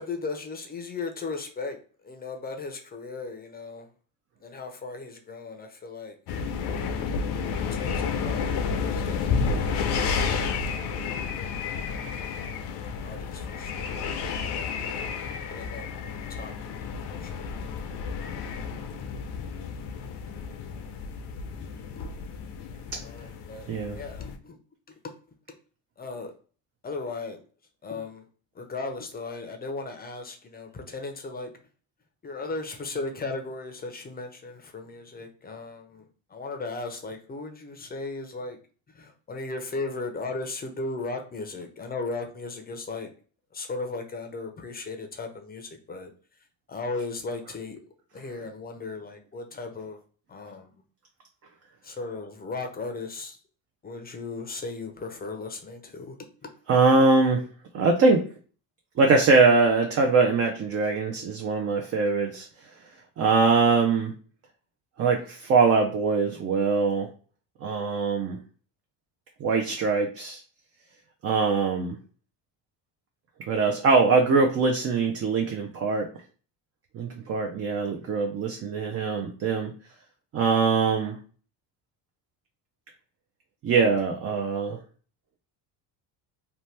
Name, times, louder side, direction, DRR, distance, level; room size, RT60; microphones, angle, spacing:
voice 1, 0.0-1.8 2.0-3.9 4.4-6.2 6.6-7.1 7.7-10.4 10.9-11.6 11.9-12.7 13.0-13.9 14.4-15.1 15.5-17.5 21.6-22.1 23.0-23.7 23.9-24.6 25.0-25.1 26.0-26.3 26.8-27.4 27.8-28.3 28.5-31.5 32.2-38.6 38.9-43.1 43.5-46.1 46.7-47.8 48.1-50.0 50.3-50.7 51.8-53.4 53.8-56.2 56.4-56.5, left 3 dB, 25° left, 6 dB, 0.5 m, -37 dB
sound 1, 6.3-24.4, left 5 dB, 75° left, 0.6 m, -31 dB
voice 2, 23.7-24.0 56.7-57.5 57.7-58.3 59.0-62.5 63.2-64.1 65.0-67.1 67.6-68.4 69.4-70.4 71.2-72.0 73.5-76.1 76.9-79.7 80.3-81.2 83.6-84.8, right 4 dB, 40° right, 3 dB, 0.5 m, -22 dB
2.8 x 2.1 x 3.2 m, 0.41 s
cardioid pair, 110°, 40 cm